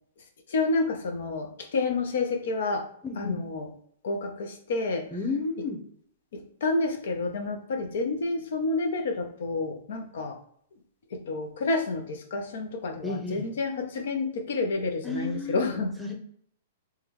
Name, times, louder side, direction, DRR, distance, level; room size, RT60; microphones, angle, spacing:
voice 1, 0.5-2.9 3.2-3.7 4.0-5.1 6.3-10.4 11.1-16.1, left 3 dB, 70° left, 5 dB, 0.6 m, -29 dB
voice 2, 3.0-3.4 5.1-5.8 13.0-13.5 15.0-15.6 16.0-16.1, left 3 dB, 5° right, 1 dB, 0.7 m, -32 dB
3.5 x 2.2 x 3.0 m, 0.64 s
hypercardioid pair, 115°, 0 cm